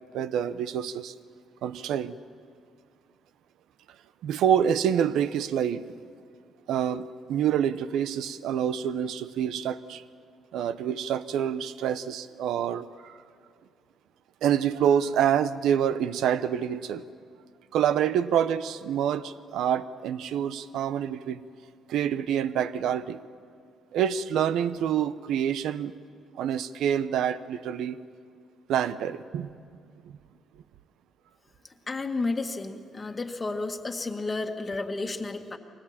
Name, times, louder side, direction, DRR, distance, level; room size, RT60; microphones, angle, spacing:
voice 1, 0.1-1.1 1.6-2.2 4.2-5.8 6.7-10.0 10.5-13.2 14.4-17.0 17.7-21.4 21.9-23.2 23.9-25.9 26.4-28.0 28.7-29.5, right 9 dB, 85° right, 14 dB, 0.8 m, -27 dB
voice 2, 31.9-35.6, left 3 dB, 25° left, 3 dB, 1.7 m, -32 dB
23.5 x 18.5 x 8.8 m, 2.2 s
cardioid pair, 115°, 0 cm